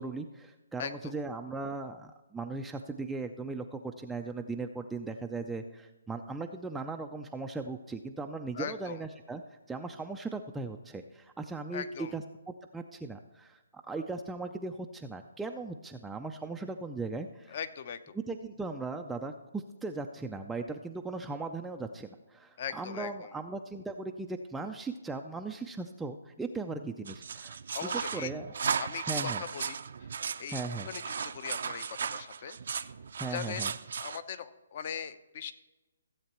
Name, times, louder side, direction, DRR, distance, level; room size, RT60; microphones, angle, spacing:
voice 1, 0.0-9.4 9.7-12.2 12.7-13.6 13.9-17.5 18.1-28.5 29.1-29.4 30.5-30.9 33.2-33.7, right 3 dB, 5° right, 4 dB, 0.4 m, -38 dB
voice 2, 0.8-1.1 8.5-9.0 11.7-12.1 17.5-18.1 22.6-23.3 27.7-28.3 28.8-30.1 30.4-32.6 33.3-33.6 34.0-35.5, left 8 dB, 45° left, 13 dB, 0.7 m, -40 dB
sound 1, 27.1-34.2, right 6 dB, 60° right, 0.5 m, -36 dB
15.5 x 8.0 x 3.0 m, 1.1 s
hypercardioid pair, 155°, 0 cm